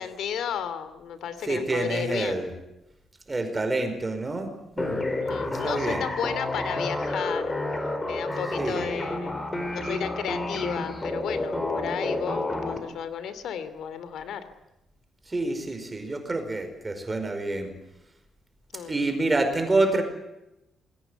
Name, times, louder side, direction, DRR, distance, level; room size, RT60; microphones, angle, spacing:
voice 1, 0.0-2.4 5.3-7.8 8.1-14.5 18.7-18.9, left 8 dB, 70° left, 12 dB, 2.8 m, -33 dB
voice 2, 1.5-2.5 3.3-4.5 4.8-5.1 5.4-6.1 8.6-8.8 15.3-17.7 18.8-20.0, right 2 dB, 15° right, 7 dB, 4.9 m, -27 dB
sound 1, 4.8-12.8, left 2 dB, 15° left, 4.4 m, -30 dB
28.0 x 21.5 x 8.1 m, 0.92 s
cardioid pair, 165°, 0 cm